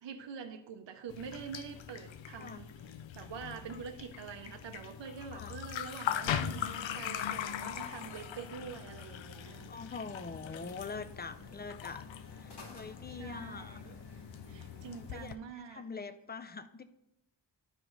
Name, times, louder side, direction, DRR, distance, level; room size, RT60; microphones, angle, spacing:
voice 1, 0.0-2.7 3.1-9.7 13.0-16.0, right 6 dB, 70° right, 5 dB, 0.7 m, -46 dB
sound 1, 1.1-15.4, left 9 dB, 85° left, 0.6 m, -41 dB
sound 2, 6.5-15.2, left 2 dB, 65° left, 1.1 m, -53 dB
voice 2, 9.7-12.0 12.3-13.9 14.9-16.8, left 4 dB, 20° left, 11 dB, 0.5 m, -44 dB
12.0 x 4.9 x 3.8 m, 0.86 s
wide cardioid pair, 110°, 45 cm